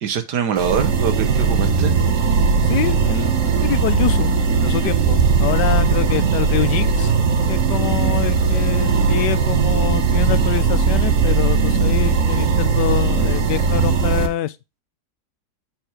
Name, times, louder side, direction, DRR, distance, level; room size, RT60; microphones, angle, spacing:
voice 1, 0.0-1.9, right 7 dB, 80° right, 1.6 m, -23 dB
sound 1, 0.6-14.3, right 5 dB, 55° right, 1.2 m, -18 dB
voice 2, 2.6-4.3 4.6-7.1 7.5-14.6, left 12 dB, 85° left, 1.3 m, -25 dB
7.8 x 4.5 x 4.8 m
omnidirectional pair, 1.8 m